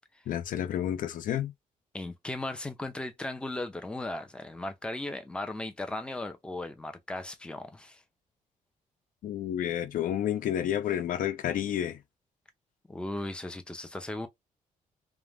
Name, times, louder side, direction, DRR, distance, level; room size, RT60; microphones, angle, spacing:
voice 1, 0.3-1.5 9.2-12.0, left 10 dB, 75° left, 0.5 m, -30 dB
voice 2, 1.9-8.0 12.9-14.3, left 2 dB, 5° left, 0.5 m, -37 dB
2.4 x 2.1 x 3.3 m
cardioid pair, 100°, 14 cm